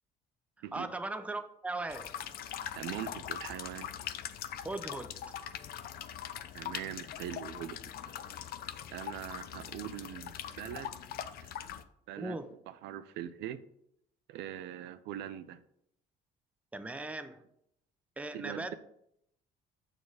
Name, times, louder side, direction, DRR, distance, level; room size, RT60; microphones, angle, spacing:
voice 1, 0.7-2.1 4.6-5.1 12.2-12.5 16.7-17.4 18.2-18.7, right 2 dB, 10° right, 8 dB, 0.6 m, -38 dB
sound 1, 1.9-11.8, left 10 dB, 65° left, 0.5 m, -42 dB
voice 2, 2.7-3.9 6.5-7.8 8.9-10.9 11.4-11.5 12.1-12.4 12.7-13.6 14.3-15.6 18.3-18.7, right 11 dB, 85° right, 14 dB, 0.5 m, -42 dB
7.0 x 4.2 x 4.9 m, 0.74 s
cardioid pair, 110°, 17 cm